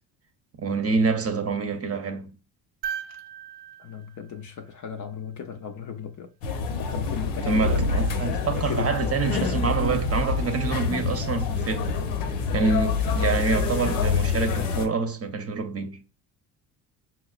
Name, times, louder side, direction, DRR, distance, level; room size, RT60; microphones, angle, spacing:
voice 1, 0.6-2.3 7.4-11.9 12.5-16.0, right 4 dB, 30° right, 0.8 m, -26 dB
sound 1, 2.8-5.2 7.2-7.3, right 8 dB, 75° right, 0.7 m, -38 dB
voice 2, 3.8-6.3 6.8-7.9 8.6-9.1, left 8 dB, 40° left, 0.6 m, -35 dB
sound 2, 6.4-14.9, left 4 dB, 75° left, 0.8 m, -26 dB
5.5 x 2.0 x 2.4 m
hypercardioid pair, 60°, 48 cm